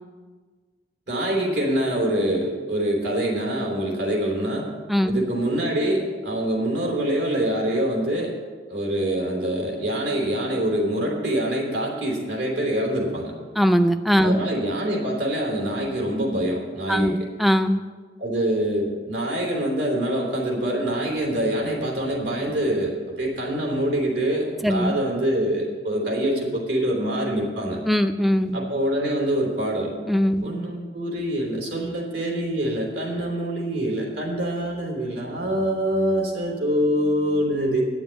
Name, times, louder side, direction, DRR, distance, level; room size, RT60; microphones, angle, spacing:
voice 1, 1.1-4.7 5.1-8.3 8.7-13.3 14.2-17.3 18.2-27.8 28.5-29.9 30.4-37.9, right 1 dB, 80° right, -1 dB, 3.4 m, -25 dB
voice 2, 13.6-14.4 16.9-17.8 24.6-25.0 27.9-28.6 30.1-30.5, equal, ahead, 9 dB, 0.5 m, -20 dB
9.7 x 7.2 x 8.7 m, 1.5 s
head